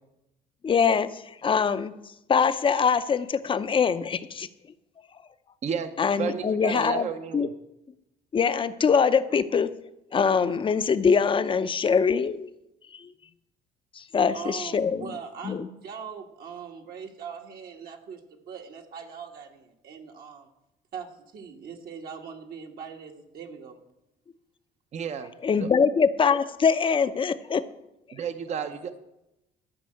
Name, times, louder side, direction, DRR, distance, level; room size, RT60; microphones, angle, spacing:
voice 1, 0.6-1.9 2.3-4.5 6.0-7.1 7.3-7.5 8.3-9.7 10.1-12.5 12.9-13.1 14.0-15.1 15.4-15.7 25.4-27.6, left 6 dB, 30° left, 13 dB, 0.6 m, -23 dB
voice 2, 6.2-7.5 24.9-25.3 25.6-25.7 28.1-29.0, right 7 dB, 40° right, 9 dB, 0.7 m, -32 dB
voice 3, 14.3-20.5 20.9-23.8 28.5-28.8, right 6 dB, 60° right, 2 dB, 1.5 m, -41 dB
12.5 x 5.3 x 7.7 m, 0.90 s
cardioid pair, 110°, 17 cm